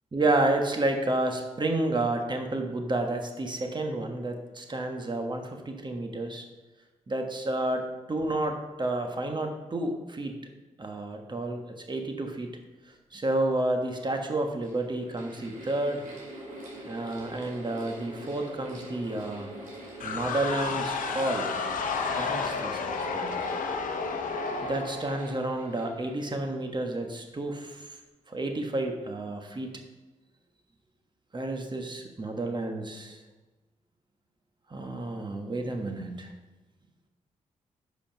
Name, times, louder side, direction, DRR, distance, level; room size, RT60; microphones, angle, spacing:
voice 1, 0.1-6.4 7.1-10.4 10.8-12.5 13.1-16.0 16.8-19.5 20.0-21.5 22.2-23.4 24.6-27.9 28.3-29.7 31.3-33.2 34.7-36.3, right 2 dB, 35° right, 4 dB, 1.3 m, -30 dB
Mechanical fan, 14.3-26.9, right 1 dB, 80° right, 2.6 m, -44 dB
sound 1, 20.0-25.8, left 4 dB, 80° left, 0.8 m, -32 dB
6.9 x 5.2 x 5.8 m, 1.2 s
cardioid pair, 55°, 14 cm